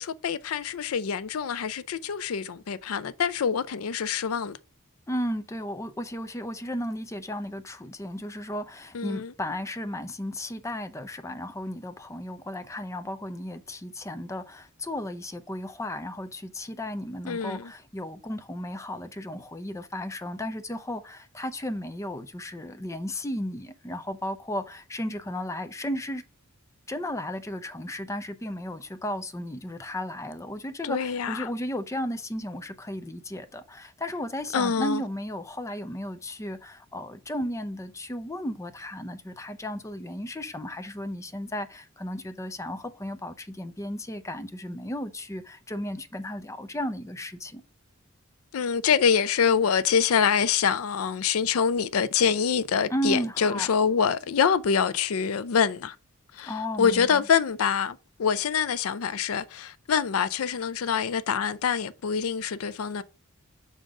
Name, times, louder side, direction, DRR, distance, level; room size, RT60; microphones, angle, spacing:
voice 1, 0.0-4.6 8.9-9.3 17.3-17.7 30.8-31.5 34.5-35.0 48.5-56.0 56.3-63.0, left 7 dB, 85° left, 0.5 m, -25 dB
voice 2, 5.1-26.2 26.9-47.6 52.9-53.7 56.5-57.3, left 1 dB, 15° left, 0.5 m, -34 dB
6.4 x 3.9 x 4.7 m
head